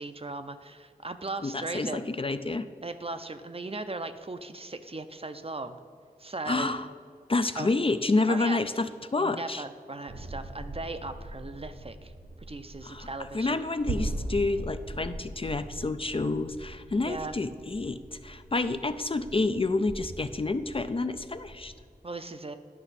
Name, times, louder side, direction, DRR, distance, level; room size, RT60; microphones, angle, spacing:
voice 1, 0.0-2.1 2.8-5.8 6.2-6.7 7.5-7.7 8.3-8.6 9.2-12.1 12.4-13.6 17.1-17.4 22.0-22.6, right 3 dB, 40° right, 9 dB, 0.5 m, -37 dB
voice 2, 1.4-2.7 6.5-6.9 7.3-9.6 12.8-13.1 13.3-21.7, left 3 dB, 35° left, 10 dB, 0.3 m, -29 dB
sound 1, 10.1-21.8, right 2 dB, 85° right, 0.8 m, -40 dB
11.0 x 5.8 x 4.1 m, 2.1 s
wide cardioid pair, 50°, 16 cm